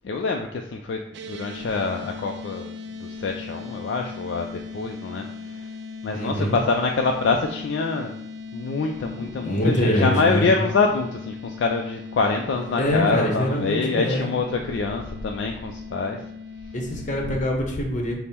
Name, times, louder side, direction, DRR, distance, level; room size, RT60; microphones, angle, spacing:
voice 1, 0.0-5.7 6.0-8.1 8.5-16.2, left 4 dB, 60° left, 3 dB, 0.3 m, -25 dB
sound 1, 1.1-17.4, left 4 dB, 55° right, 0.4 m, -38 dB
voice 2, 6.1-6.6 9.2-10.5 12.7-14.3 16.7-18.2, equal, 40° left, 2 dB, 0.8 m, -24 dB
5.2 x 2.0 x 4.3 m, 0.77 s
head